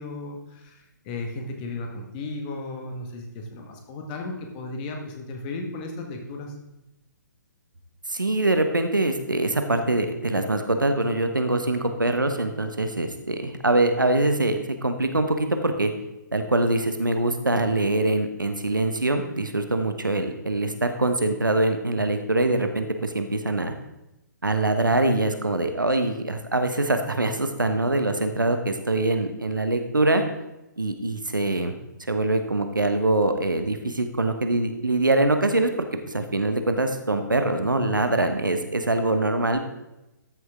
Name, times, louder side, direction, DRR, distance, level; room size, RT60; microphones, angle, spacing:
voice 1, 0.0-6.5, left 2 dB, 25° left, 2 dB, 1.5 m, -35 dB
voice 2, 8.1-15.9 16.3-23.7 24.4-30.2 30.8-31.7 32.1-39.6, right 2 dB, 80° right, 7 dB, 1.1 m, -24 dB
13.0 x 6.4 x 3.6 m, 0.94 s
figure-of-eight pair, 130°, 11 cm